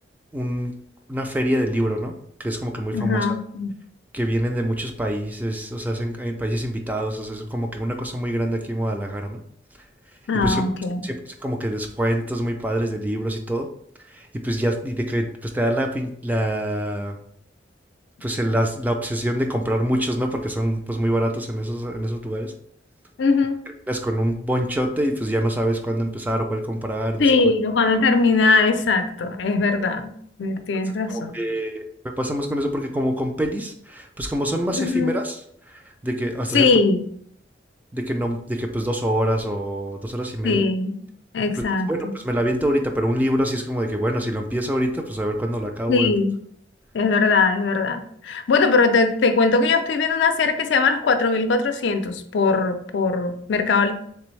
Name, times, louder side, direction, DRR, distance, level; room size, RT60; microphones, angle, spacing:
voice 1, 0.3-0.7 1.1-2.1 2.4-3.4 4.1-9.4 10.4-10.6 11.0-13.7 14.1-17.2 18.2-22.5 23.9-27.5 30.8-31.9 32.2-36.7 37.9-40.6 41.6-46.1, equal, 10° right, 4 dB, 0.3 m, -25 dB
voice 2, 2.9-3.7 10.3-11.0 23.2-23.6 27.2-30.1 30.4-31.3 34.7-35.2 36.5-37.1 40.4-41.0 41.3-41.9 45.9-46.3 46.9-53.9, left 4 dB, 80° left, 7 dB, 0.4 m, -20 dB
3.4 x 3.4 x 3.1 m, 0.66 s
head